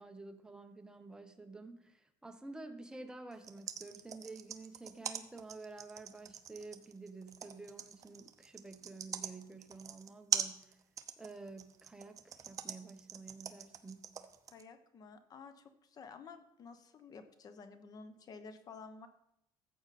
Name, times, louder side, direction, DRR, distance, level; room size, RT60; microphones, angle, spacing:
voice 1, 0.0-10.8 11.2-14.1, right 3 dB, 10° right, 6 dB, 1.0 m, -50 dB
sound 1, 3.3-14.6, right 8 dB, 35° right, 0.8 m, -41 dB
voice 2, 14.5-19.1, left 5 dB, 40° left, 10 dB, 1.0 m, -52 dB
14.0 x 7.8 x 4.2 m, 0.81 s
cardioid pair, 125°, 10 cm